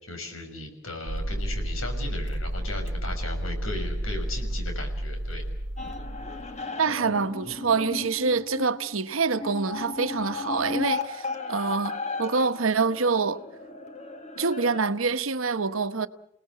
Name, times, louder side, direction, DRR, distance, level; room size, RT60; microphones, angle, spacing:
voice 1, 0.0-5.4, left 2 dB, 90° left, 6.1 m, -37 dB
sound 1, 1.1-6.6, right 1 dB, 60° right, 1.3 m, -31 dB
sound 2, 5.8-14.8, left 3 dB, 35° left, 2.1 m, -35 dB
voice 2, 6.8-13.4 14.4-16.1, right 4 dB, 80° right, 1.1 m, -26 dB
29.5 x 18.5 x 8.5 m
head